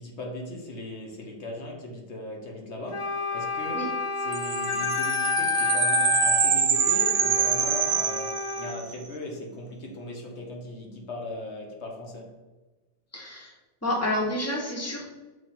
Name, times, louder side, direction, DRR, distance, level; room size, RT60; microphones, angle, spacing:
voice 1, 0.0-12.4, left 1 dB, 75° left, 1.5 m, -38 dB
Wind instrument woodwind instrument, 2.9-8.8, left 5 dB, 40° left, 0.5 m, -29 dB
sound 1, 4.3-8.9, right 8 dB, 70° right, 0.9 m, -25 dB
voice 2, 13.1-13.5 13.8-15.1, left 1 dB, 15° left, 1.3 m, -29 dB
6.5 x 4.7 x 4.4 m
omnidirectional pair, 1.2 m